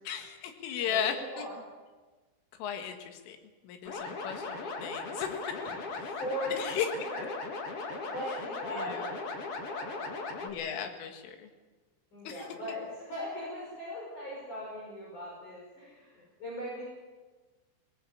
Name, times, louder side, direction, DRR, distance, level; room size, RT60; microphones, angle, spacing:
voice 1, 0.1-1.5 2.6-3.4 3.6-5.6 5.9-6.1 6.5-6.9 8.7-9.1 10.4-11.5 12.3-12.5, left 8 dB, 80° left, 6 dB, 4.4 m, -36 dB
voice 2, 0.8-1.5 5.6-5.8 6.0-6.7 7.1-10.3 12.1-16.8, equal, 40° left, -5 dB, 7.0 m, -40 dB
sound 1, 3.8-10.5, left 3 dB, 55° left, 1.6 m, -38 dB
19.5 x 19.5 x 8.6 m, 1.3 s
omnidirectional pair, 5.7 m